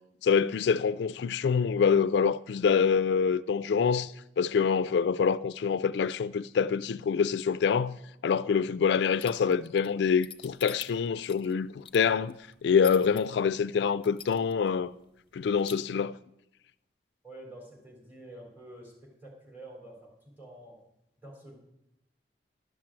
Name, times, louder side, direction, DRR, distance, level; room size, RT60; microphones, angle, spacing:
voice 1, 0.2-12.4 12.6-14.9 15.3-16.2, left 6 dB, 70° left, 0.3 m, -26 dB
sound 1, 9.2-13.2 13.7-13.8 14.0-14.7 15.0-15.1 15.4-15.7, left 9 dB, 30° left, 0.7 m, -44 dB
voice 2, 17.2-20.1 20.4-20.8 21.2-21.6, right 1 dB, 10° right, 3.9 m, -48 dB
11.5 x 7.3 x 7.5 m
head